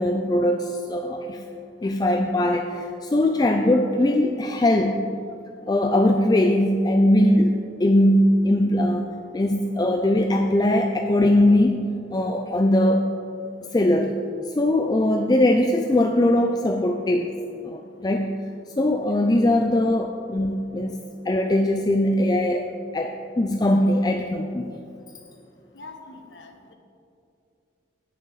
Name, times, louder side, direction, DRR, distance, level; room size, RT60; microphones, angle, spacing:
voice 1, 0.0-1.4 1.8-4.9 5.7-9.1 9.3-13.1 13.7-14.2 14.6-17.3 17.6-18.4 18.8-21.0 21.3-24.7, left 1 dB, 20° left, 4 dB, 0.4 m, -21 dB
voice 2, 25.7-26.7, left 3 dB, 65° left, 4 dB, 1.1 m, -44 dB
18.5 x 6.5 x 4.0 m, 2.6 s
head